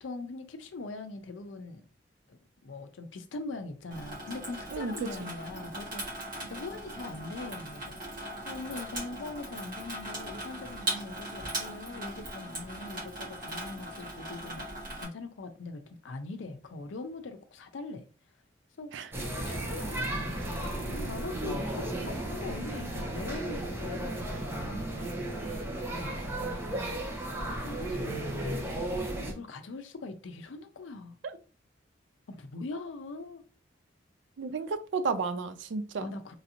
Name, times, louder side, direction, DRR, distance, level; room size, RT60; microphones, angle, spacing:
voice 1, 0.0-1.9 2.3-18.1 18.8-19.1 19.5-25.2 25.9-28.8 29.3-31.2 32.3-33.4 36.0-36.4, left 3 dB, 85° left, 0.5 m, -42 dB
Water tap faucet / Sink (filling or washing), 3.9-15.1, right 1 dB, 50° right, 1.3 m, -39 dB
voice 2, 4.7-5.3 18.9-19.1 34.4-36.1, right 4 dB, 75° right, 0.4 m, -33 dB
sound 1, 19.1-29.3, right 1 dB, 15° right, 0.6 m, -34 dB
3.1 x 2.6 x 2.8 m
head